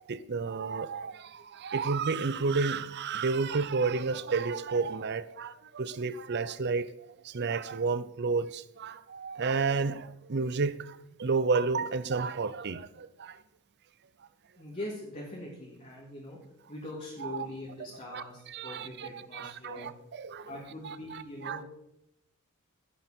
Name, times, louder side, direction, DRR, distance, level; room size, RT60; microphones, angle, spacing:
voice 1, 0.0-6.9 7.3-10.9 11.2-13.3 17.2-17.5 18.1-18.2 18.5-20.5 20.8-21.6, right 4 dB, 50° right, 0.6 m, -31 dB
voice 2, 14.6-16.4 16.7-19.9 20.5-21.6, left 1 dB, 35° left, 2.6 m, -42 dB
15.5 x 7.8 x 4.4 m
head